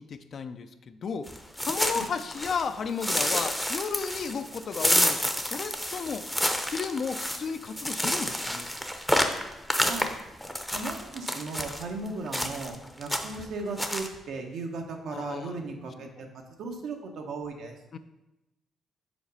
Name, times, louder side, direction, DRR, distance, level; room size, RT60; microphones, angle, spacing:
voice 1, 0.0-1.3 1.6-6.3 6.7-8.7 15.1-15.6 16.2-16.3 17.9-18.0, left 5 dB, 50° left, 10 dB, 0.4 m, -34 dB
sound 1, 1.3-2.7 3.0-11.8 12.3-12.8 13.0-13.4 13.8-14.1, equal, 5° left, 0.6 m, -29 dB
voice 2, 10.7-16.3 16.6-17.8, right 3 dB, 75° right, 3 dB, 0.9 m, -36 dB
5.0 x 4.1 x 5.3 m, 0.97 s
cardioid pair, 90°, 0 cm